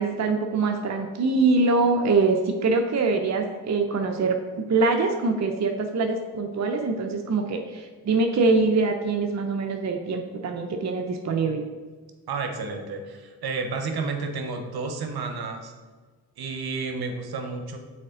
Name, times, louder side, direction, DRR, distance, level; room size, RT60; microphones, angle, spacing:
voice 1, 0.0-11.6, right 3 dB, 40° right, 4 dB, 0.7 m, -24 dB
voice 2, 12.3-15.7 16.4-17.8, right 4 dB, 60° right, 5 dB, 0.9 m, -31 dB
6.4 x 4.2 x 3.8 m, 1.4 s
supercardioid pair, 45°, 42 cm